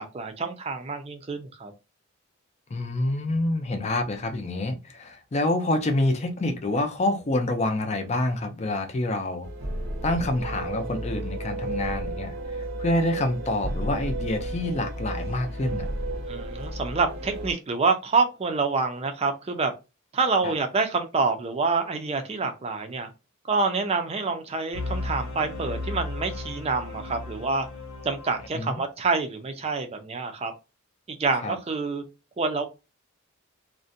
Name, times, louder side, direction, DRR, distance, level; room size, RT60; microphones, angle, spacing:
voice 1, 0.0-1.7 16.3-19.7 20.1-23.1 23.5-27.7 28.0-30.5 31.1-32.0 32.4-32.7, right 4 dB, 30° right, 0.4 m, -27 dB
voice 2, 2.7-9.5 10.0-12.3 12.8-15.9 20.4-20.5 28.5-28.8 31.4-31.6, left 2 dB, 30° left, 0.4 m, -27 dB
sound 1, 9.4-17.5, right 1 dB, 70° right, 0.6 m, -32 dB
sound 2, 24.7-28.7, left 2 dB, 80° left, 0.9 m, -35 dB
2.5 x 2.1 x 2.6 m
head